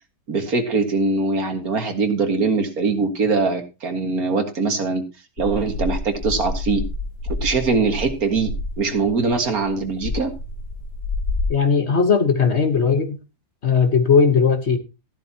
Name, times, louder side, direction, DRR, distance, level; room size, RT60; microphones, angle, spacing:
voice 1, 0.3-5.0 5.4-6.8 7.4-8.5 8.8-10.3, right 4 dB, 60° right, 2.2 m, -22 dB
sound 1, 5.4-11.5, left 2 dB, 85° left, 2.5 m, -29 dB
voice 2, 11.5-13.2 13.6-14.8, left 5 dB, 45° left, 1.4 m, -17 dB
14.0 x 12.0 x 2.8 m
omnidirectional pair, 1.7 m